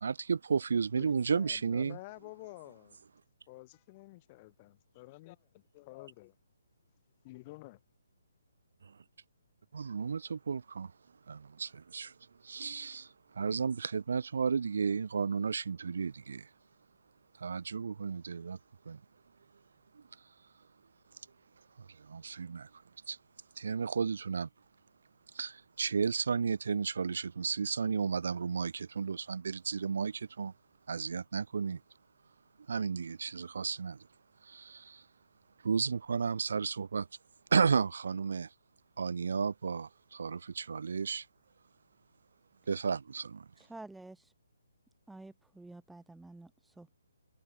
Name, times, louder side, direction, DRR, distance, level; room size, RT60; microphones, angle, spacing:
voice 1, 0.0-2.0 9.7-10.9 11.3-12.1 12.4-16.5 17.4-18.6 18.9-19.0 22.0-22.7 23.1-23.2 23.6-24.5 25.3-30.5 30.9-31.8 32.7-34.0 34.4-35.0 35.6-37.1 37.5-38.5 39.0-41.3 42.7-43.5, right 5 dB, 60° right, 0.4 m, -33 dB
voice 2, 1.0-3.0 3.5-6.3 7.2-7.8, left 22 dB, 30° left, 3.3 m, -50 dB
voice 3, 43.6-44.3 45.1-46.9, right 2 dB, 5° right, 0.5 m, -50 dB
figure-of-eight pair, 135°, 0 cm